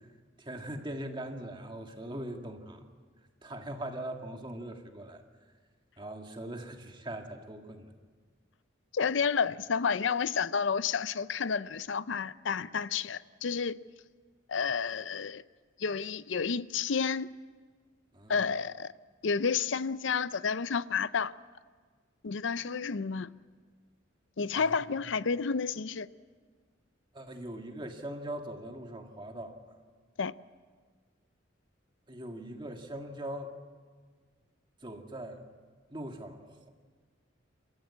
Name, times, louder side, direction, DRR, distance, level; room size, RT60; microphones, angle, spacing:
voice 1, 0.4-2.9 3.4-5.2 6.0-7.9 18.1-18.4 24.5-24.8 27.1-29.8 32.1-33.5 34.8-35.4 35.9-36.7, right 1 dB, 25° right, 1.8 m, -41 dB
voice 2, 8.9-13.8 14.5-15.4 15.8-17.3 18.3-18.9 19.2-21.3 22.2-23.3 24.4-26.1 30.2-30.3, left 5 dB, 75° left, 0.6 m, -30 dB
27.5 x 14.0 x 8.6 m
head